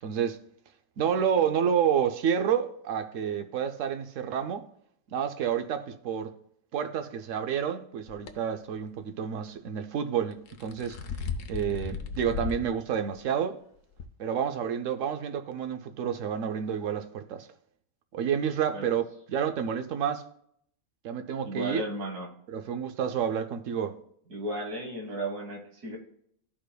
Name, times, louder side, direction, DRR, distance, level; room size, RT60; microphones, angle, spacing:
voice 1, 0.0-0.4 1.0-4.7 5.1-6.3 6.7-11.0 11.5-13.6 14.2-17.5 18.1-20.2 21.0-21.8 22.5-24.0, right 8 dB, 65° right, 0.9 m, -29 dB
sound 1, 8.1-8.3 10.3-12.7 13.1-13.2 14.0-14.1, left 5 dB, 65° left, 1.0 m, -35 dB
voice 2, 21.4-22.3 24.3-26.0, right 1 dB, 85° right, 1.9 m, -34 dB
12.5 x 4.9 x 2.2 m
omnidirectional pair, 1.6 m